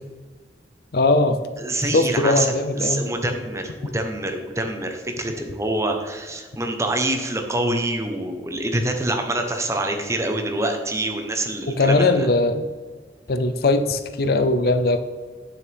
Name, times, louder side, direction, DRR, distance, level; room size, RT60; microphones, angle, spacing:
voice 1, 0.9-1.4 1.9-3.0 11.8-12.7 13.3-15.0, left 2 dB, 60° left, 9 dB, 0.6 m, -19 dB
voice 2, 1.6-12.3, right 1 dB, 15° right, 4 dB, 0.9 m, -26 dB
9.1 x 7.1 x 3.4 m, 1.4 s
head